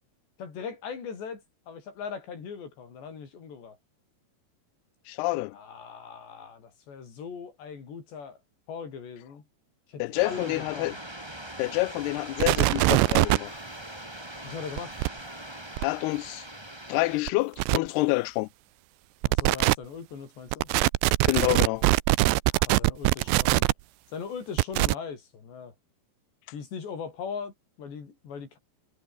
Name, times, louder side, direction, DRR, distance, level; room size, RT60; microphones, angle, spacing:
voice 1, 0.4-3.8 5.5-8.4 8.7-9.4 9.9-10.9 14.4-15.0 19.2-20.7 22.5-23.7 24.1-25.7 26.5-28.6, left 6 dB, 65° left, 7.3 m, -39 dB
voice 2, 5.1-5.6 10.0-10.9 11.6-13.6 15.8-16.4 16.9-18.5 21.3-21.8, left 22 dB, 90° left, 2.3 m, -27 dB
sound 1, 10.1-17.2, right 1 dB, 5° right, 2.4 m, -42 dB
sound 2, 12.4-13.4 14.8-15.1 15.8-15.9 17.3-17.4 17.6-17.8 19.2-19.7 20.5-23.7 24.6-24.9, right 21 dB, 80° right, 2.8 m, -22 dB
omnidirectional pair, 5.3 m